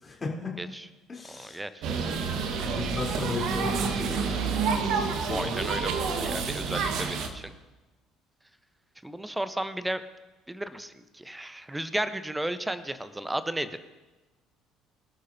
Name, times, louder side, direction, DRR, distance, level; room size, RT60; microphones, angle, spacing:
voice 1, 0.0-0.6 1.1-1.6 2.6-4.5 5.2-5.5, left 3 dB, 25° left, -1 dB, 3.9 m, -35 dB
voice 2, 0.6-0.9 1.3-1.8 5.3-7.5 9.0-10.0 10.5-13.8, right 1 dB, 10° right, 12 dB, 1.1 m, -34 dB
sound 1, 1.8-7.3, right 5 dB, 50° right, 1.6 m, -29 dB
25.0 x 11.5 x 2.9 m, 1.1 s
figure-of-eight pair, 55°, 0 cm